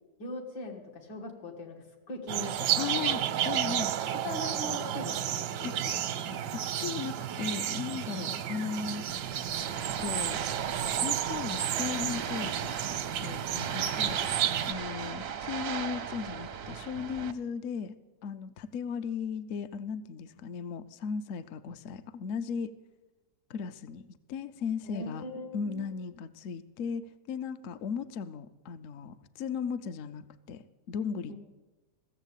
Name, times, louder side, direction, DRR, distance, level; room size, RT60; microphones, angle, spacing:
voice 1, 0.2-3.5 4.2-6.0 8.2-8.4 13.9-14.2 24.8-25.9 31.3-31.4, left 2 dB, 80° left, 2 dB, 2.4 m, -41 dB
sound 1, 2.3-14.7, right 10 dB, 85° right, 1.3 m, -32 dB
voice 2, 2.8-3.9 5.6-5.8 6.5-9.0 10.0-10.4 10.8-17.9 18.2-22.7 23.5-25.2 25.5-31.4, left 6 dB, 65° left, 12 dB, 0.8 m, -37 dB
sound 2, 9.1-17.3, right 7 dB, 60° right, 0.6 m, -37 dB
15.5 x 7.2 x 8.2 m, 1.1 s
omnidirectional pair, 1.8 m